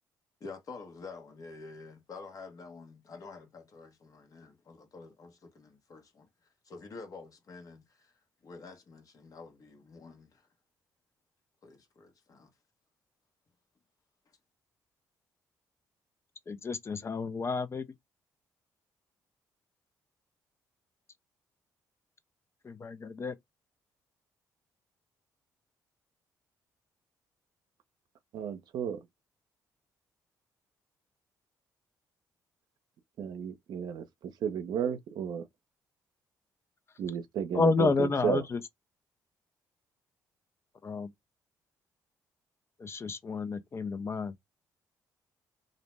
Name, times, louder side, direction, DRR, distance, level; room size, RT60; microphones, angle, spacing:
voice 1, 0.4-6.3 6.7-8.1 8.4-10.4 11.6-12.5, left 4 dB, 55° left, 1.1 m, -48 dB
voice 2, 16.5-17.8 22.6-23.3 37.5-38.6 40.8-41.1 42.8-44.3, left 4 dB, 35° left, 0.5 m, -30 dB
voice 3, 28.3-29.0 33.2-35.5 37.0-38.4, right 8 dB, 75° right, 0.6 m, -33 dB
2.6 x 2.1 x 3.2 m
cardioid pair, 75°, 7 cm